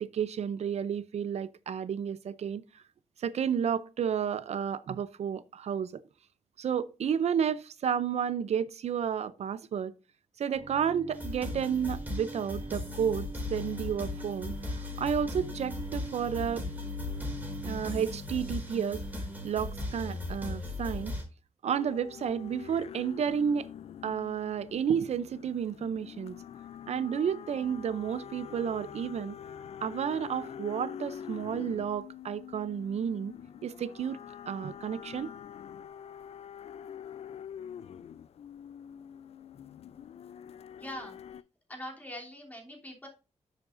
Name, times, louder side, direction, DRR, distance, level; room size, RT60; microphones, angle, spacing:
voice 1, 0.0-2.8 3.2-6.0 6.6-9.9 10.4-14.5 15.0-16.6 17.6-19.0 19.4-21.1 21.6-23.7 24.0-26.4 26.9-29.3 29.8-33.3 33.6-34.2 34.5-35.3, right 8 dB, 70° right, 0.5 m, -31 dB
Bowed string instrument, 10.5-18.0, right 2 dB, 55° right, 2.2 m, -44 dB
sound 1, 11.1-21.2, left 2 dB, 15° right, 4.4 m, -37 dB
sound 2, 21.7-41.4, left 9 dB, 65° left, 0.4 m, -45 dB
voice 2, 40.8-41.1 41.7-43.1, left 1 dB, 15° left, 3.1 m, -42 dB
10.5 x 7.3 x 2.6 m
wide cardioid pair, 135°, 12 cm